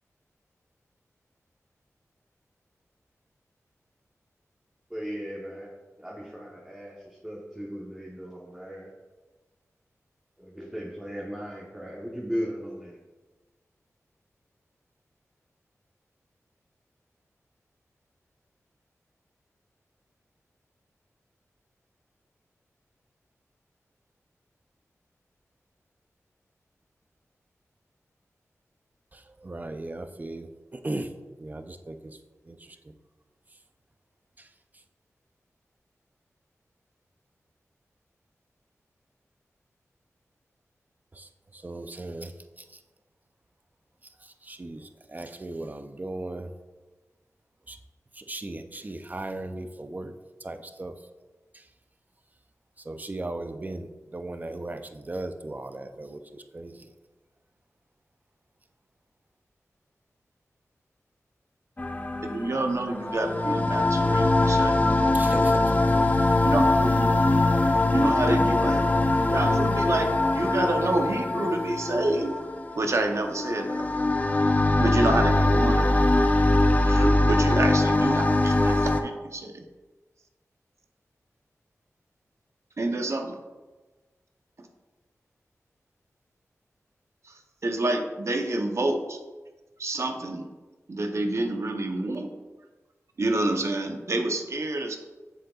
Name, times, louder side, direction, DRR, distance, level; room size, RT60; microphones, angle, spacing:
voice 1, 4.9-8.9 10.4-13.0, equal, 10° right, -3 dB, 1.1 m, -37 dB
voice 2, 29.4-31.1 31.4-32.2 32.5-32.6 41.2-42.3 44.4-46.5 47.7-47.8 48.2-50.1 50.4-50.9 52.9-56.8 65.1-66.0, right 2 dB, 30° right, 8 dB, 0.5 m, -37 dB
sound 1, 61.8-79.0, left 2 dB, 30° left, 0.6 m, -22 dB
voice 3, 62.2-64.9 66.1-67.1 67.9-68.9 69.3-72.4 72.7-73.9 74.8-75.9 76.8-79.6 82.8-83.4 87.2-89.2 89.8-90.5 90.9-92.3 93.2-95.0, right 2 dB, 60° right, 5 dB, 0.8 m, -28 dB
7.5 x 6.6 x 2.4 m, 1.2 s
wide cardioid pair, 60°, 6 cm